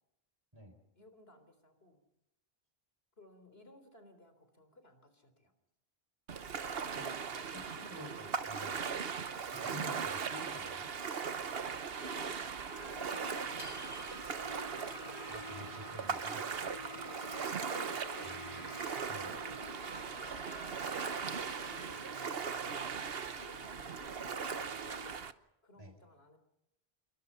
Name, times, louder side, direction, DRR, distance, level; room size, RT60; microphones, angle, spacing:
voice 1, 0.9-2.0 3.2-5.5 12.0-12.5 12.7-13.8 16.6-17.1 17.7-18.4 18.7-22.3 23.3-25.0 25.6-26.4, left 2 dB, 75° left, 9 dB, 4.2 m, -58 dB
Ocean, 6.3-25.3, right 6 dB, 70° right, 1.2 m, -39 dB
voice 2, 6.6-7.2 7.5-8.8 9.5-10.9 15.3-16.5 18.2-18.7 19.1-19.3 25.8-25.9, left 1 dB, 25° right, 6 dB, 4.8 m, -50 dB
sound 1, 12.5-19.7, left 3 dB, 55° left, 2.7 m, -54 dB
Singing, 12.7-25.1, left 2 dB, 40° left, 1.9 m, -52 dB
28.0 x 23.0 x 5.7 m, 0.86 s
omnidirectional pair, 1.0 m